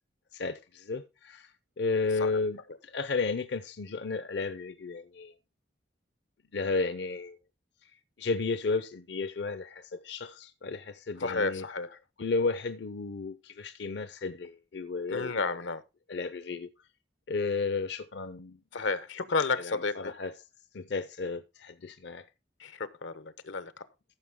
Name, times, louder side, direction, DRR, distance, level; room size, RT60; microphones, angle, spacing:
voice 1, 0.3-5.3 6.5-7.4 7.8-11.7 12.2-15.6 16.1-16.7 17.3-18.9 19.5-20.3 20.7-22.3, left 4 dB, 65° left, 0.6 m, -33 dB
voice 2, 11.2-12.0 15.1-15.8 18.7-20.1 22.6-23.8, left 4 dB, 90° left, 0.9 m, -32 dB
14.5 x 6.2 x 3.6 m
head